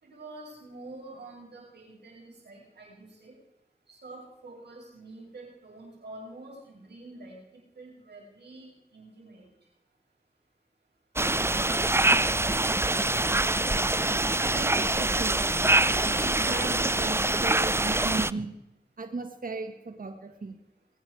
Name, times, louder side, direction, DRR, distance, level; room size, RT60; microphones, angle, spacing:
voice 1, 0.0-3.3 3.9-7.4 7.8-9.5, right 2 dB, 85° right, -1 dB, 6.0 m, -47 dB
sound 1, 11.2-18.3, right 2 dB, 15° right, 0.5 m, -25 dB
voice 2, 14.5-18.5 19.0-20.6, right 3 dB, 55° right, 6 dB, 1.6 m, -36 dB
21.0 x 9.7 x 4.8 m, 0.94 s
cardioid pair, 45°, 17 cm